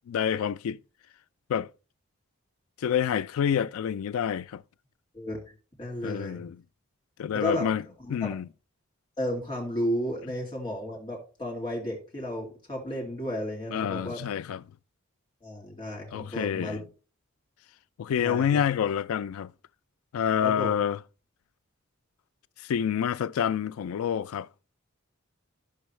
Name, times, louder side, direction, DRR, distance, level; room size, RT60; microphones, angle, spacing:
voice 1, 0.1-0.8 1.5-1.7 2.8-4.6 6.0-6.6 7.2-7.8 8.1-8.5 13.7-14.6 16.1-16.8 18.0-19.5 20.1-21.0 22.6-24.5, left 8 dB, 80° left, 0.3 m, -28 dB
voice 2, 5.8-6.4 7.3-7.7 8.0-8.3 9.2-14.2 15.4-16.8 18.2-18.6 20.4-20.8, equal, 20° left, 2.5 m, -33 dB
11.0 x 6.2 x 3.2 m
head